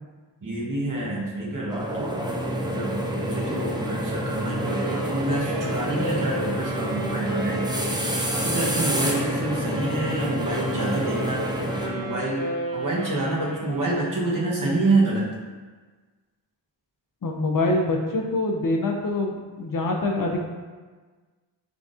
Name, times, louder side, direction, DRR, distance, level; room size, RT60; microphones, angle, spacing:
voice 1, 0.4-2.2 2.6-7.9 8.3-12.4 12.7-15.3, right 2 dB, 45° right, -4 dB, 1.0 m, -27 dB
sound 1, 1.7-11.9, equal, 10° right, 0.4 m, -28 dB
Wind instrument woodwind instrument, 4.6-14.2, right 1 dB, 75° right, 0.9 m, -34 dB
voice 2, 17.2-20.5, left 2 dB, 50° left, 1 dB, 0.5 m, -25 dB
3.9 x 3.4 x 2.4 m, 1.4 s
wide cardioid pair, 60°, 43 cm